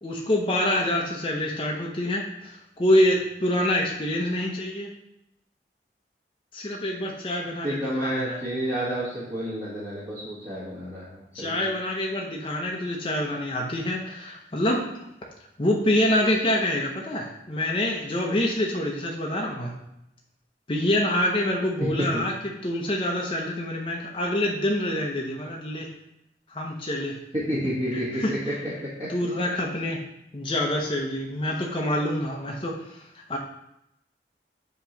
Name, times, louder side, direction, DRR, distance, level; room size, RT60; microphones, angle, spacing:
voice 1, 0.0-4.9 6.5-8.4 11.3-15.1 15.6-19.7 20.7-25.9 26.5-27.2 27.9-28.6 29.1-30.0 30.3-33.4, left 1 dB, 30° left, -1 dB, 0.7 m, -26 dB
voice 2, 7.6-11.6 21.8-22.2 27.3-28.5 28.8-29.1, equal, 30° right, -10 dB, 1.5 m, -30 dB
7.3 x 3.0 x 5.1 m, 0.82 s
head